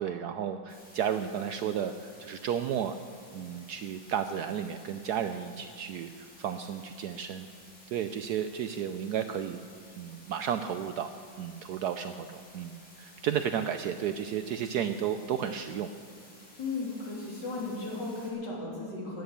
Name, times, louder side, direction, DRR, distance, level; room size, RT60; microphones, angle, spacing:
voice 1, 0.0-3.0 3.3-7.5 7.9-9.6 10.0-11.1 11.4-15.9, right 8 dB, 75° right, 9 dB, 0.9 m, -33 dB
sound 1, 0.7-18.3, left 1 dB, 35° left, 3.6 m, -54 dB
voice 2, 16.6-19.2, left 3 dB, 60° left, -4 dB, 3.8 m, -35 dB
15.5 x 10.0 x 6.8 m, 2.2 s
omnidirectional pair, 2.1 m